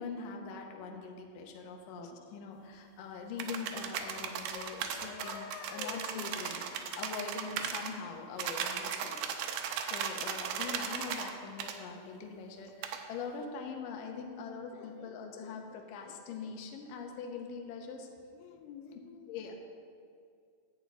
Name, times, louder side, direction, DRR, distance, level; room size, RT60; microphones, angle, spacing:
voice 1, 0.0-6.6 7.0-9.2 9.9-18.1 19.3-19.5, left 5 dB, 70° left, 2 dB, 2.3 m, -43 dB
sound 1, 3.4-7.9 8.4-11.3 11.6-11.8 12.8-13.0, right 8 dB, 80° right, 2.0 m, -37 dB
voice 2, 4.5-7.0 14.7-16.6 18.4-19.4, left 7 dB, 90° left, 7 dB, 2.7 m, -49 dB
10.5 x 4.7 x 8.2 m, 2.3 s
omnidirectional pair, 4.7 m